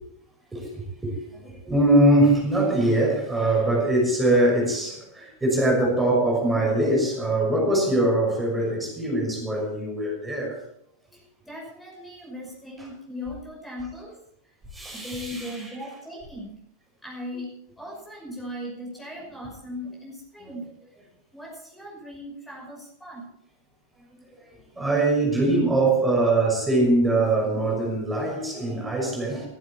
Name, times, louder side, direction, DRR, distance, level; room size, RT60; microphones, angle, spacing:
voice 1, 0.5-10.6 14.7-15.6 20.4-20.5 24.5-29.5, right 1 dB, 10° right, 6.2 m, -22 dB
voice 2, 11.1-14.2 14.9-16.6 17.0-20.7 21.3-23.3, left 1 dB, 5° left, 5.9 m, -38 dB
15.5 x 15.0 x 4.4 m
figure-of-eight pair, 90°, 0 cm